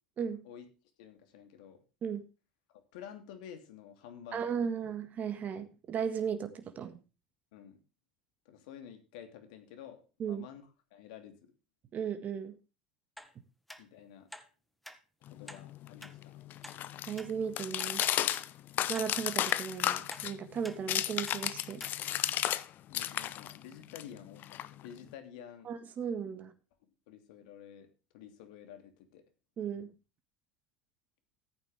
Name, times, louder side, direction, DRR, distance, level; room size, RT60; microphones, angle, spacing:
voice 1, 1.0-1.8 2.7-4.6 7.5-7.8 8.4-10.6 10.9-11.3 13.8-14.3 15.3-16.4 22.9-25.7 27.1-27.9 28.1-29.2, left 9 dB, 70° left, 7 dB, 2.8 m, -50 dB
voice 2, 4.3-7.0 10.2-10.5 11.9-12.6 17.1-18.0 18.9-21.8 25.7-26.5 29.6-29.9, right 7 dB, 40° right, 8 dB, 1.6 m, -36 dB
sound 1, 13.2-13.3 13.7-13.8 14.3-14.5 14.8-15.0 15.5-15.6 16.0-16.1 16.6-16.8 17.2-17.3 17.8-17.9 18.3-18.5 18.9-19.1 19.5-19.6 20.1-20.3 20.6-20.8 21.3-21.4 21.8-21.9 22.4-22.5, equal, ahead, 1.6 m, -48 dB
sound 2, 15.3-22.6 22.9-25.1, left 12 dB, 50° left, 0.8 m, -34 dB
14.5 x 9.0 x 3.5 m, 0.31 s
hypercardioid pair, 80°, 4 cm